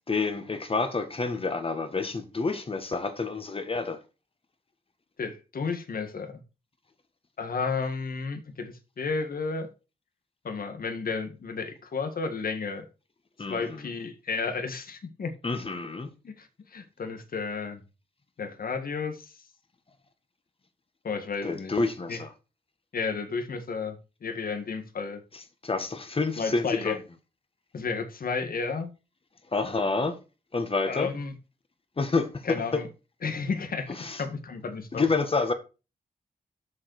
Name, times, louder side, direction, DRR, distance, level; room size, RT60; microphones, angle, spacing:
voice 1, 0.1-4.0 13.4-13.9 15.4-16.1 21.4-22.3 25.6-27.0 29.5-30.2 30.5-31.1 32.0-32.6 34.0-34.2 34.9-35.5, left 3 dB, 35° left, 1.8 m, -28 dB
voice 2, 5.2-6.4 7.4-9.7 10.4-12.9 13.5-15.3 16.2-17.8 18.4-19.4 21.0-21.7 22.1-22.2 22.9-25.2 26.4-27.0 27.7-28.9 30.9-31.3 32.4-32.9 33.2-35.0, left 4 dB, 65° left, 1.8 m, -32 dB
7.4 x 6.7 x 4.9 m
cardioid pair, 80°, 16 cm